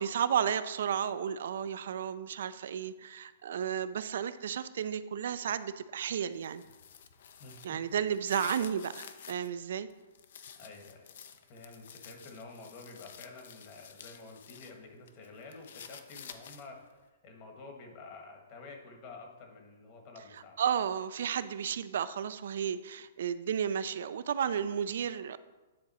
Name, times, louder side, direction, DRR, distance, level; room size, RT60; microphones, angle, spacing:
voice 1, 0.0-6.6 7.6-9.9 20.6-25.4, right 8 dB, 65° right, 14 dB, 0.4 m, -33 dB
sound 1, 6.3-9.5 9.9-14.8 15.1-16.8, left 8 dB, 60° left, 0.6 m, -51 dB
voice 2, 7.4-7.8 9.1-9.2 10.6-11.0 11.4-20.6, left 3 dB, 35° left, 2 dB, 1.3 m, -50 dB
9.5 x 3.9 x 4.2 m, 1.2 s
hypercardioid pair, 160°, 0 cm